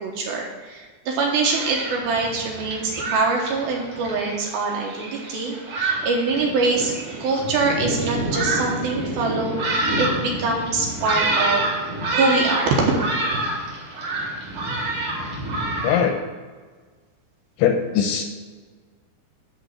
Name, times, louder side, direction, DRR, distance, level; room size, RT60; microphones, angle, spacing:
voice 1, 0.0-6.9 7.2-11.7 12.1-12.9 13.2-13.4, right 3 dB, 70° right, -1 dB, 2.7 m, -24 dB
Thunderstorm, 1.1-15.9, right 2 dB, 50° right, 3.6 m, -27 dB
voice 2, 15.8-16.3 17.6-18.2, left 8 dB, 80° left, 5 dB, 2.5 m, -20 dB
11.0 x 3.7 x 7.5 m, 1.5 s
omnidirectional pair, 5.1 m